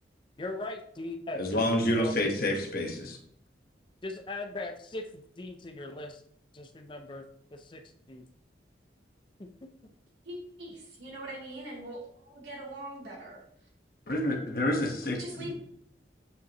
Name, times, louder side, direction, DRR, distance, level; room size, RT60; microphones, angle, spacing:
voice 1, 0.4-1.7 2.0-2.2 4.0-6.2 6.5-7.2 7.5-7.8 8.1-8.3 9.4-9.5, left 2 dB, 30° left, 6 dB, 0.5 m, -39 dB
voice 2, 1.3-3.2 14.1-15.5, left 1 dB, 55° left, 1 dB, 1.4 m, -28 dB
voice 3, 10.2-13.4 15.2-15.5, right 1 dB, 80° right, -4 dB, 3.0 m, -42 dB
7.8 x 5.6 x 3.0 m, 0.68 s
head